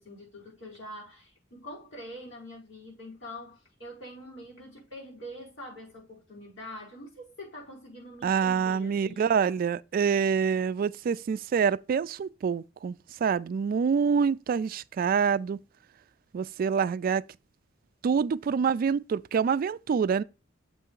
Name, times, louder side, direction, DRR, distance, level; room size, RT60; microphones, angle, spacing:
voice 1, 0.0-9.5, left 1 dB, 75° left, 4.9 m, -45 dB
voice 2, 8.2-12.9 13.2-15.6 16.3-17.2 18.0-20.2, right 6 dB, 50° right, 0.3 m, -26 dB
7.5 x 3.4 x 5.5 m
head